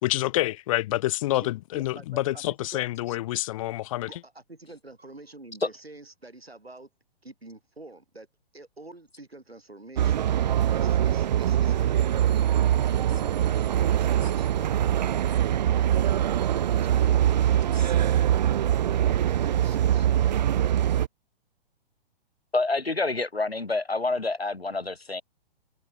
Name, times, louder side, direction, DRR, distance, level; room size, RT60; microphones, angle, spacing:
voice 1, 0.0-4.1, left 16 dB, 35° left, 1.0 m, -27 dB
voice 2, 1.4-2.8 4.1-6.9 7.2-8.3 8.5-10.3 10.7-15.1 15.5-20.4, right 2 dB, 85° right, 7.3 m, -47 dB
sound 1, 10.0-21.1, right 11 dB, 45° right, 0.5 m, -23 dB
voice 3, 22.5-25.2, left 3 dB, 85° left, 2.1 m, -27 dB
figure-of-eight pair, 115°, 30 cm